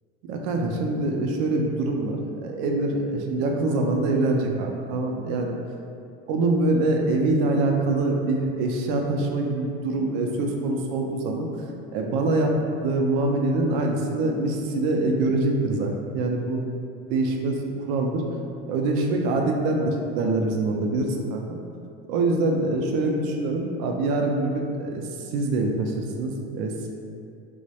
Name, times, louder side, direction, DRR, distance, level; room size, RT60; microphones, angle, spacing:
voice 1, 0.3-5.6 6.3-11.5 11.9-12.5 12.8-16.6 17.1-18.2 18.7-21.4 22.1-25.0 25.3-26.9, right 2 dB, 65° right, 2 dB, 0.4 m, -24 dB
2.2 x 2.1 x 2.7 m, 2.5 s
hypercardioid pair, 75°, 29 cm